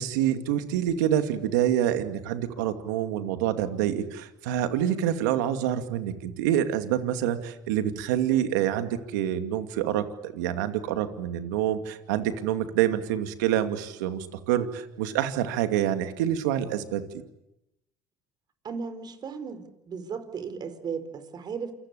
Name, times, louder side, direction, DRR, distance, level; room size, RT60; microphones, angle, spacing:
voice 1, 0.0-17.0, right 11 dB, 90° right, 8 dB, 2.5 m, -27 dB
voice 2, 18.6-21.7, right 6 dB, 45° right, 10 dB, 4.8 m, -36 dB
28.5 x 23.5 x 8.6 m, 0.87 s
supercardioid pair, 75°, 10 cm